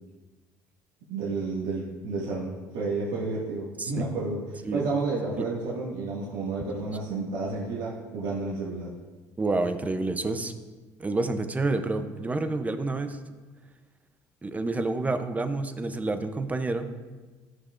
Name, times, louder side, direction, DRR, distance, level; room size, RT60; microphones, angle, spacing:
voice 1, 1.1-8.9, right 3 dB, 80° right, -8 dB, 1.9 m, -31 dB
voice 2, 9.4-10.5 11.0-13.2 14.4-16.9, right 2 dB, 20° right, 8 dB, 0.7 m, -28 dB
13.5 x 6.4 x 2.5 m, 1.3 s
supercardioid pair, 100°, 8 cm